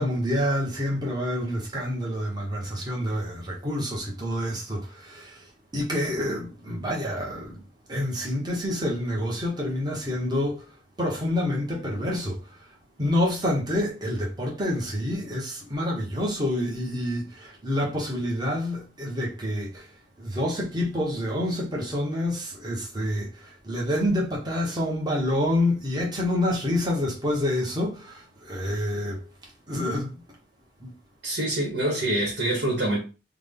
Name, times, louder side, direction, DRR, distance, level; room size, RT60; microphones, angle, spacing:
voice 1, 0.0-7.6 7.9-12.7 13.0-30.2 30.8-30.9, left 1 dB, 25° right, 1.0 m, -28 dB
voice 2, 31.2-33.0, right 1 dB, 70° right, 1.3 m, -25 dB
3.5 x 2.2 x 3.5 m
head